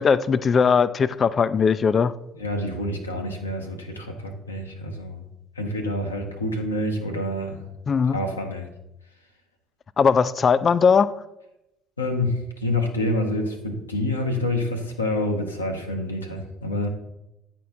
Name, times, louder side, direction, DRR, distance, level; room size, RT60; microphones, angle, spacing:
voice 1, 0.0-2.1 7.9-8.2 10.0-11.1, left 6 dB, 40° left, 16 dB, 0.3 m, -19 dB
voice 2, 2.3-5.3 5.6-7.6 8.1-8.7 12.0-16.9, left 1 dB, 85° left, 2 dB, 0.7 m, -27 dB
9.1 x 4.5 x 3.7 m, 0.90 s
figure-of-eight pair, 50°, 0 cm